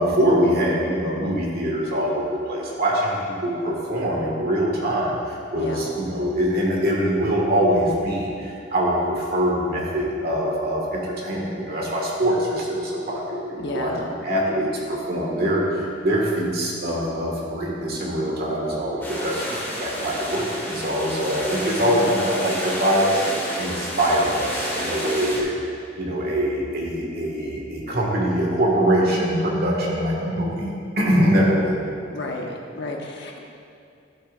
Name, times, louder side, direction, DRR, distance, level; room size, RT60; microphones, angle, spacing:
voice 1, 0.0-13.9 14.2-31.8, equal, 55° right, -3 dB, 1.8 m, -23 dB
voice 2, 5.5-5.9 12.4-12.5 13.6-14.1 21.6-22.1 32.1-33.4, left 2 dB, 65° left, 0 dB, 1.1 m, -32 dB
sound 1, 19.0-25.4, equal, 10° left, 1.6 m, -30 dB
12.0 x 8.7 x 2.5 m, 2.5 s
head